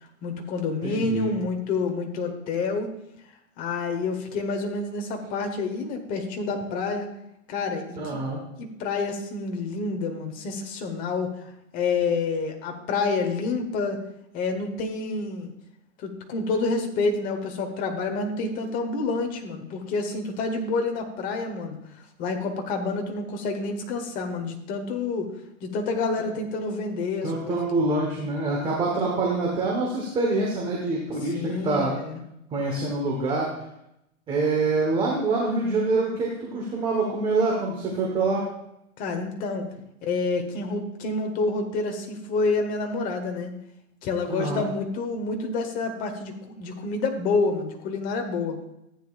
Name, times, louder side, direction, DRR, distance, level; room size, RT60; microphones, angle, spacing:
voice 1, 0.2-2.9 3.6-7.1 7.5-8.2 8.6-14.0 14.3-15.5 16.0-21.8 22.2-25.3 25.6-27.6 31.3-32.2 39.0-39.7 40.0-43.5 44.0-48.6, left 3 dB, 20° left, 4 dB, 1.1 m, -28 dB
voice 2, 0.8-1.3 8.0-8.4 27.2-31.9 32.5-33.5 34.3-38.5 44.3-44.7, right 3 dB, 10° right, -2 dB, 1.1 m, -25 dB
14.5 x 9.1 x 2.4 m, 0.82 s
hypercardioid pair, 155°, 40 cm